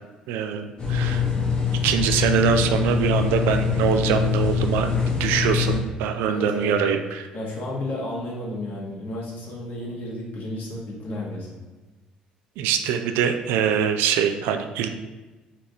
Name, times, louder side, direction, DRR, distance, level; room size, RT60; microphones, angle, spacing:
voice 1, 0.3-1.2 1.8-7.3 12.6-14.9, right 8 dB, 60° right, 7 dB, 0.3 m, -23 dB
sound 1, 0.8-5.8, left 6 dB, 25° left, 1.0 m, -23 dB
voice 2, 6.3-6.8 7.3-11.6, left 1 dB, 50° left, -4 dB, 1.3 m, -32 dB
4.1 x 3.3 x 2.8 m, 1.2 s
figure-of-eight pair, 55°, 4 cm